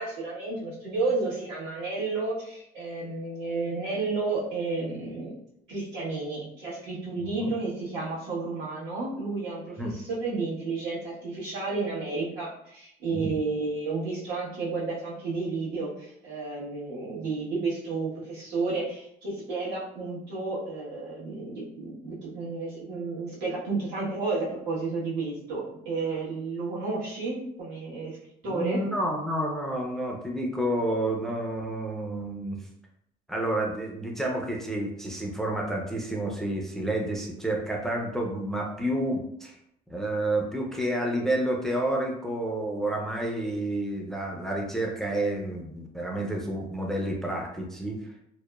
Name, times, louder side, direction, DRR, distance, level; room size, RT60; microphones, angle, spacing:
voice 1, 0.0-5.3 5.7-28.2 28.4-28.9, right 3 dB, 85° right, -7 dB, 1.2 m, -31 dB
voice 2, 28.5-32.6 33.3-39.6 39.9-48.1, right 1 dB, ahead, -1 dB, 0.4 m, -30 dB
2.9 x 2.0 x 2.2 m, 0.73 s
cardioid pair, 110°, 17 cm